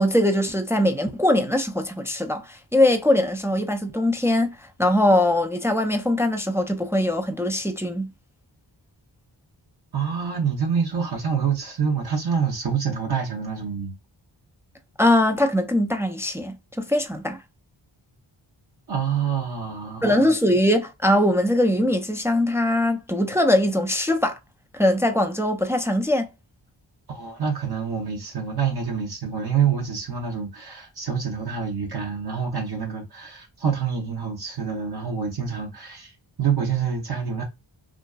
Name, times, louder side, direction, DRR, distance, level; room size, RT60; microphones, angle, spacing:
voice 1, 0.0-8.1 15.0-17.4 20.0-24.4 24.7-26.3, left 1 dB, 5° right, 0.3 m, -21 dB
voice 2, 9.9-13.9 18.9-20.3 27.1-37.4, right 7 dB, 50° right, 0.8 m, -26 dB
2.5 x 2.3 x 2.3 m
cardioid pair, 40°, 48 cm